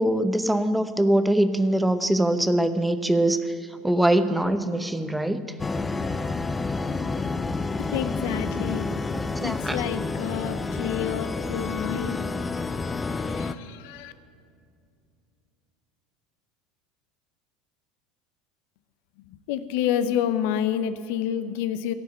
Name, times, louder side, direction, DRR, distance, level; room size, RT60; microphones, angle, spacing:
voice 1, 0.0-3.4 3.8-5.5 9.1-9.8, right 1 dB, 5° right, 10 dB, 0.8 m, -23 dB
sound 1, 5.6-13.5, left 3 dB, 20° left, 0.5 m, -29 dB
voice 2, 7.8-8.9 9.4-14.1 19.3-21.9, left 9 dB, 65° left, 12 dB, 0.6 m, -29 dB
16.0 x 5.7 x 8.0 m, 2.4 s
hypercardioid pair, 80°, 0 cm